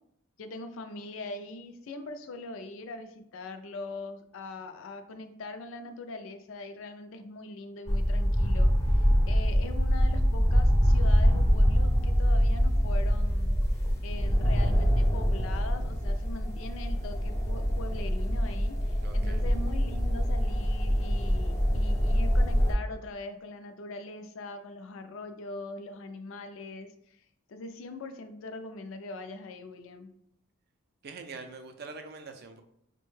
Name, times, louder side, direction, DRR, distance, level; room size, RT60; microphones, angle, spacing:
voice 1, 0.4-13.6 14.0-27.2 27.5-30.1, left 2 dB, 70° left, 8 dB, 0.4 m, -42 dB
sound 1, 7.9-22.7, equal, 15° left, 0.5 m, -25 dB
voice 2, 19.0-19.4 31.0-32.6, right 4 dB, 45° right, 6 dB, 0.4 m, -44 dB
4.2 x 2.2 x 3.1 m, 0.72 s
head